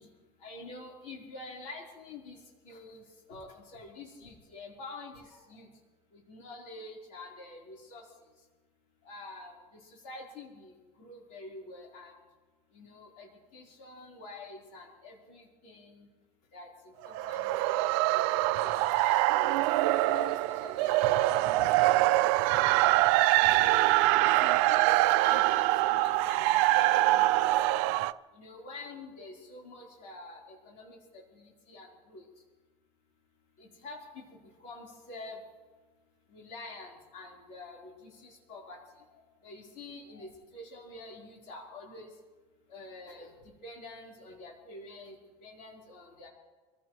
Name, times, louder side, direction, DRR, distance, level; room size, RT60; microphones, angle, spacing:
voice 1, 0.0-5.7 6.1-8.5 9.0-12.2 12.7-16.1 16.5-17.5 18.1-19.7 20.1-22.0 23.3-23.9 24.2-27.8 28.3-32.4 33.6-35.4 36.3-42.2 42.7-46.3, left 2 dB, 60° left, -2 dB, 4.2 m, -47 dB
sound 1, 17.0-28.1, right 17 dB, 80° right, 0.5 m, -24 dB
27.0 x 15.5 x 3.2 m, 1.3 s
cardioid pair, 160°, 15 cm